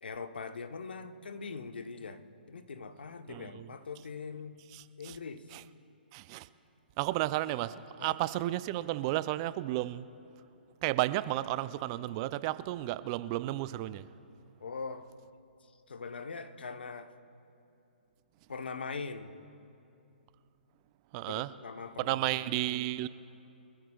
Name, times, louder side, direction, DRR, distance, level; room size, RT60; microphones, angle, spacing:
voice 1, 0.0-2.2 2.5-4.6 5.0-5.4 8.0-8.1 14.6-15.1 15.9-17.1 18.5-19.3 21.2-22.4, left 4 dB, 75° left, 8 dB, 1.0 m, -42 dB
voice 2, 3.3-3.7 4.7-5.2 5.5-5.6 6.1-6.5 7.0-10.1 10.8-14.1 21.1-21.5 22.0-23.1, right 16 dB, 35° right, 15 dB, 0.4 m, -33 dB
25.0 x 15.0 x 2.4 m, 2.7 s
hypercardioid pair, 130°, 5 cm